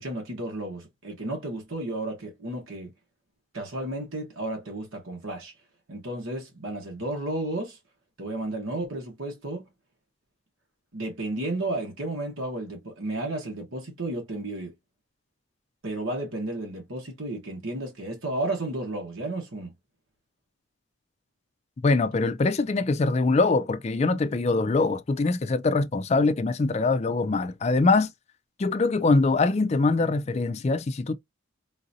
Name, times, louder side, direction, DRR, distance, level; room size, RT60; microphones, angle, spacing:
voice 1, 0.0-2.9 3.5-5.5 5.9-7.8 8.2-9.7 10.9-14.7 15.8-19.7, right 2 dB, 80° right, 1.2 m, -33 dB
voice 2, 21.8-28.1 28.6-31.1, left 3 dB, 30° left, 0.3 m, -23 dB
3.8 x 2.5 x 2.7 m
head